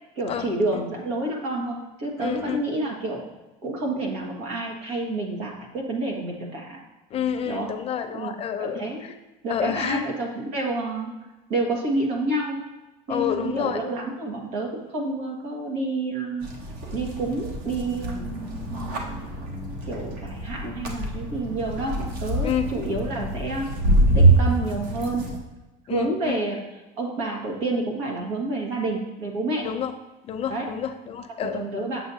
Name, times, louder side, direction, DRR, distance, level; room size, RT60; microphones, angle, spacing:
voice 1, 0.1-3.2 3.6-6.8 7.4-7.7 8.1-9.1 9.4-11.1 11.5-12.6 13.1-16.5 16.9-19.2 19.8-23.7 24.1-25.4 25.9-26.6 27.0-29.7 30.5-30.8 31.3-32.0, right 2 dB, 90° right, -1 dB, 1.6 m, -29 dB
voice 2, 2.2-2.6 7.1-8.8 9.5-10.0 13.1-13.8 22.4-22.7 25.9-26.4 29.6-29.9 30.3-31.6, left 8 dB, 35° left, 7 dB, 0.5 m, -28 dB
sound 1, 16.4-25.4, right 2 dB, 60° right, 1.2 m, -25 dB
7.8 x 6.3 x 2.7 m, 1.1 s
cardioid pair, 135°, 17 cm